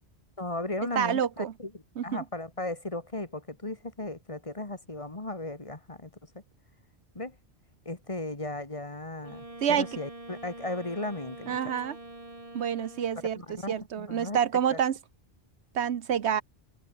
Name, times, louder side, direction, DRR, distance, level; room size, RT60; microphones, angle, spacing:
voice 1, 0.4-1.7 2.0-6.1 7.2-7.3 7.9-11.6 13.4-14.4 14.7-14.8, left 2 dB, 30° left, 2.0 m, -36 dB
voice 2, 0.9-1.5 2.0-2.2 9.6-9.9 11.5-12.0 12.5-13.4 13.7-15.0 15.7-16.4, right 8 dB, 80° right, 1.1 m, -28 dB
Wind instrument woodwind instrument, 9.2-13.5, right 1 dB, 30° right, 3.3 m, -45 dB
omnidirectional pair, 1.1 m